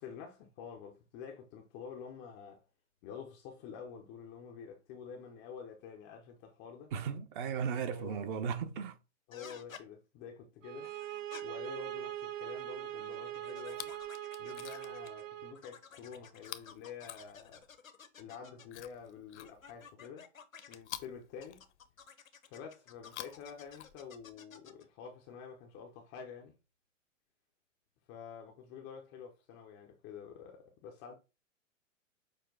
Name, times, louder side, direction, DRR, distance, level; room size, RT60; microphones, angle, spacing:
voice 1, 0.0-2.6 3.0-6.9 7.9-8.4 9.3-10.9 11.4-13.9 14.4-17.7 18.2-20.3 20.7-21.6 22.5-26.6 28.1-31.1, left 7 dB, 15° left, 0.4 m, -48 dB
voice 2, 6.9-9.0, right 7 dB, 40° right, 0.8 m, -36 dB
sound 1, 9.3-9.8 10.8-11.4 12.4-15.2 15.5-18.8 19.4-20.8 21.4-24.9, left 7 dB, 85° left, 0.8 m, -54 dB
sound 2, 10.6-15.6, right 13 dB, 75° right, 0.7 m, -42 dB
Chewing mastication, 13.6-14.1 14.4-15.1 16.4-17.8 18.7-19.9 20.8-22.1 22.9-24.4 25.3-25.4, left 12 dB, 60° left, 0.6 m, -49 dB
6.4 x 2.2 x 3.8 m
figure-of-eight pair, 115°, 39 cm